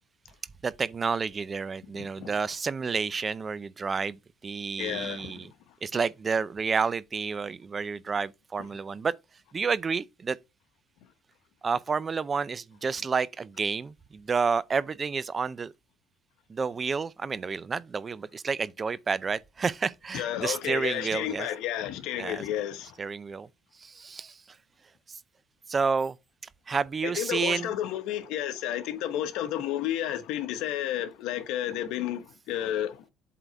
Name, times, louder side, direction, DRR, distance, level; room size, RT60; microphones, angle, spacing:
voice 1, 0.6-5.5 5.8-9.1 9.5-10.4 11.6-15.7 16.5-21.5 22.2-22.4 23.0-23.5 23.8-24.3 25.7-26.2 26.7-27.7, right 5 dB, 25° right, 0.5 m, -30 dB
voice 2, 2.0-2.3 4.8-5.5 20.1-22.9 27.0-33.0, left 11 dB, 80° left, 1.1 m, -31 dB
8.1 x 3.9 x 4.4 m
cardioid pair, 120°, 0 cm